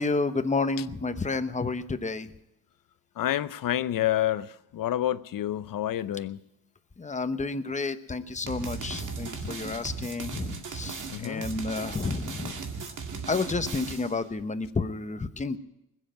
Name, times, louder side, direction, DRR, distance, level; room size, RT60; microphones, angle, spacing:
voice 1, 0.0-2.3 7.0-12.6 13.3-15.6, left 3 dB, 20° left, 0.9 m, -30 dB
voice 2, 3.2-6.4 11.1-11.4, left 12 dB, 65° left, 0.7 m, -28 dB
sound 1, 8.5-14.2, right 5 dB, 55° right, 2.2 m, -37 dB
20.5 x 7.7 x 9.1 m
cardioid pair, 100°, 37 cm